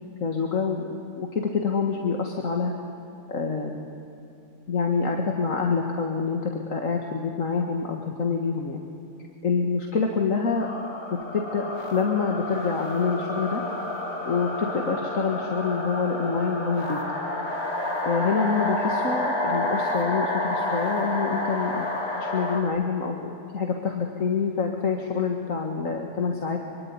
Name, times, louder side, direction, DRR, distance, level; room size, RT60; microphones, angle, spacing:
voice 1, 0.2-0.9 1.2-2.7 3.3-3.9 4.7-8.8 9.4-10.7 11.1-11.7 11.9-13.6 14.3-17.0 18.0-21.9 22.3-26.6, left 5 dB, 70° left, 1 dB, 2.2 m, -26 dB
sound 1, 10.5-22.6, left 1 dB, 50° left, 3.2 m, -29 dB
25.0 x 24.5 x 9.6 m, 2.8 s
omnidirectional pair, 1.4 m